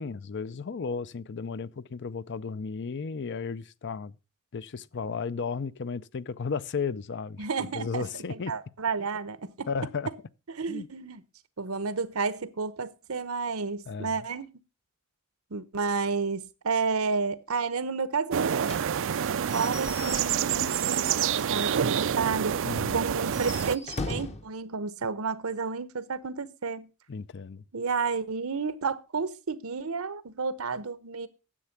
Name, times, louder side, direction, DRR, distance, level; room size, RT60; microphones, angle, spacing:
voice 1, 0.0-4.2 4.5-7.5 7.7-8.5 9.7-10.1 10.7-10.9 13.9-14.1 22.6-23.0 27.1-27.6, left 5 dB, 55° left, 0.5 m, -34 dB
voice 2, 7.4-9.7 10.6-11.2 11.6-14.5 15.5-18.5 19.5-22.6 22.9-26.9 27.7-31.3, right 4 dB, 80° right, 0.9 m, -31 dB
sound 1, 18.3-23.8, right 8 dB, 60° right, 0.5 m, -27 dB
Slam / Squeak / Wood, 18.7-21.9 22.2-22.3 22.6-22.7 23.2-24.5, left 3 dB, 30° left, 0.9 m, -39 dB
10.0 x 7.5 x 5.8 m
head